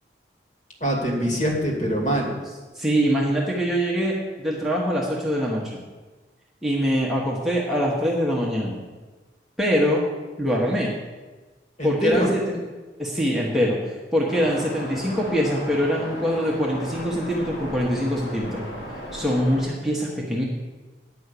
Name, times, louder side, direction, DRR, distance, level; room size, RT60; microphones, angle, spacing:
voice 1, 0.8-2.3 11.8-12.3, equal, 40° left, -1 dB, 2.4 m, -24 dB
voice 2, 2.7-5.8 6.6-8.8 9.6-10.0 10.4-10.9 11.8-12.6 13.0-18.7 19.1-20.4, equal, ahead, -5 dB, 1.2 m, -23 dB
Waves surf, 14.3-19.6, equal, 80° left, 3.8 m, -35 dB
9.9 x 5.4 x 8.3 m, 1.3 s
head